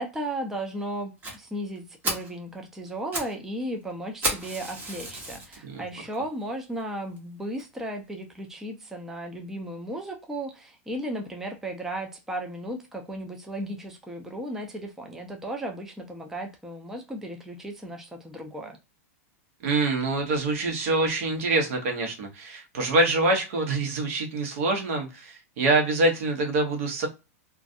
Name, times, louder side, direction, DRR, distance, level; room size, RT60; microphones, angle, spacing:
voice 1, 0.0-18.8, right 1 dB, 5° right, 3 dB, 0.4 m, -35 dB
Fire, 1.2-1.4 1.8-1.9 2.0-2.3 2.9-3.4 3.6-3.7 4.2-5.6 6.1-6.2 6.8-6.9 7.2-7.3 7.6-7.7, right 2 dB, 20° right, 1.0 m, -31 dB
voice 2, 19.6-27.1, right 2 dB, 65° right, 3 dB, 1.0 m, -25 dB
2.4 x 2.3 x 2.5 m, 0.28 s
supercardioid pair, 140°, 8 cm